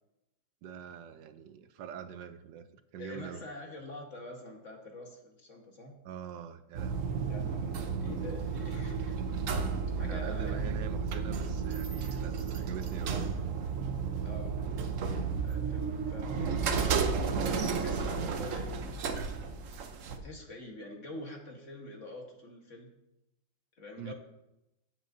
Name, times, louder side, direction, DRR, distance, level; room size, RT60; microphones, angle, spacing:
voice 1, 0.6-2.7 2.9-3.4 6.0-7.1 9.9-13.1 17.3-17.7 24.0-24.1, right 8 dB, 75° right, 11 dB, 1.3 m, -44 dB
voice 2, 3.0-5.9 7.3-9.2 10.0-10.7 14.2-14.5 15.4-16.7 17.4-18.8 20.2-22.9 23.7-24.1, left 2 dB, 45° left, 1 dB, 1.5 m, -45 dB
sound 1, 6.7-20.2, right 5 dB, 60° right, 0.9 m, -33 dB
14.5 x 7.9 x 2.6 m, 0.89 s
omnidirectional pair, 2.0 m